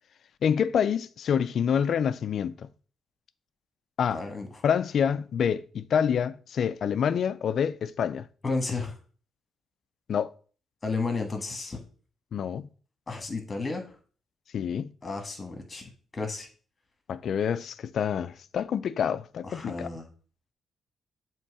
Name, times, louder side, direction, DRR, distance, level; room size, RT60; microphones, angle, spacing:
voice 1, 0.4-2.7 4.0-4.2 4.6-8.3 10.1-10.3 12.3-12.7 14.5-14.9 17.1-19.9, left 7 dB, 60° left, 0.4 m, -27 dB
voice 2, 4.1-4.6 8.4-9.0 10.8-11.8 13.1-13.9 15.0-16.5 19.4-20.1, left 3 dB, 25° left, 1.5 m, -33 dB
7.3 x 3.1 x 4.8 m
cardioid pair, 105°, 0 cm